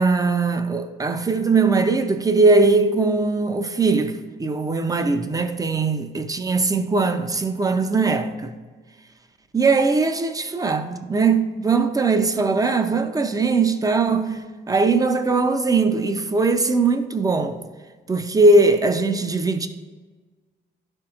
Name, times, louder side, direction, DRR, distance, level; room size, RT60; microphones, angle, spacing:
voice 1, 0.0-8.6 9.5-17.6 18.1-19.7, right 3 dB, 20° right, 0.6 m, -20 dB
11.0 x 4.5 x 2.5 m
cardioid pair, 90°, 20 cm